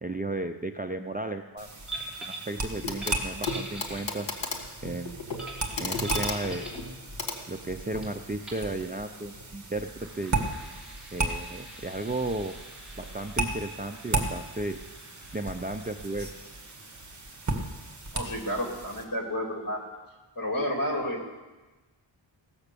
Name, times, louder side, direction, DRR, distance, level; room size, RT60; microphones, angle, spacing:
voice 1, 0.0-1.7 2.2-4.3 4.8-5.2 5.8-6.7 7.5-10.4 11.1-12.6 13.0-14.8 15.3-16.4, right 2 dB, 20° right, 5 dB, 0.4 m, -34 dB
sound 1, 1.6-19.0, right 2 dB, 35° right, 1.7 m, -36 dB
sound 2, 1.9-2.5 2.9-4.4 5.4-6.8 8.0-8.1 8.4-8.7 9.7-19.0, right 2 dB, ahead, 3.0 m, -45 dB
Clock, 2.8-3.2 3.4-8.1 9.4-9.5, left 3 dB, 65° left, 1.8 m, -35 dB
voice 2, 18.1-19.8 20.4-21.3, left 1 dB, 45° left, 1 dB, 2.5 m, -31 dB
16.5 x 7.2 x 6.8 m, 1.2 s
wide cardioid pair, 95°, 48 cm